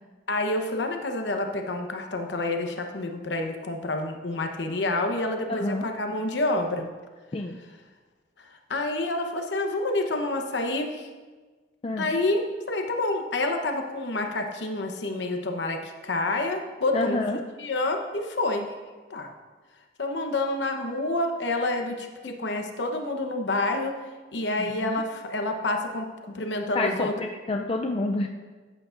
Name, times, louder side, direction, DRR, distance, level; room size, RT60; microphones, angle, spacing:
voice 1, 0.3-6.9 8.7-11.1 12.0-12.4 12.7-17.2 17.6-18.7 19.1-19.3 20.0-23.9 24.3-26.1 26.3-27.1, left 2 dB, 80° left, 4 dB, 1.0 m, -28 dB
voice 2, 5.5-5.8 7.3-7.6 11.8-12.1 16.9-17.4 24.6-25.0 26.7-28.3, left 2 dB, 30° left, 2 dB, 0.4 m, -28 dB
14.0 x 8.7 x 2.5 m, 1.4 s
head